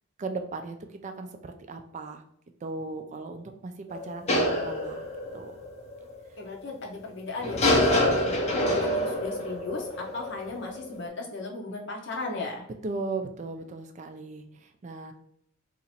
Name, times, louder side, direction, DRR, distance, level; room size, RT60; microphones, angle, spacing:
voice 1, 0.2-0.8 1.0-2.2 2.6-5.1 5.3-5.5 12.8-15.1, right 3 dB, 35° right, 6 dB, 0.3 m, -37 dB
sound 1, 3.9-6.2 7.4-11.0, left 1 dB, 30° left, 0.6 m, -26 dB
voice 2, 6.4-12.6, left 3 dB, 60° left, -1 dB, 0.9 m, -37 dB
2.9 x 2.6 x 4.2 m, 0.66 s
head